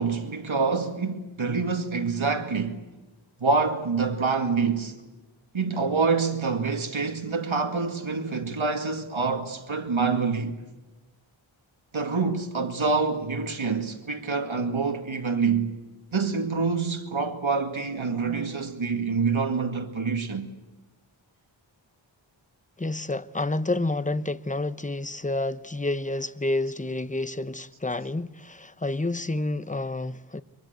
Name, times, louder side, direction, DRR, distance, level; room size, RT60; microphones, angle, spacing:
voice 1, 0.0-2.8 3.4-5.0 5.5-10.6 11.9-15.7 16.1-20.5, right 4 dB, 80° right, 2.1 m, -26 dB
voice 2, 22.8-30.4, left 2 dB, 15° left, 0.9 m, -29 dB
24.0 x 23.0 x 8.1 m
wide cardioid pair, 45°, 47 cm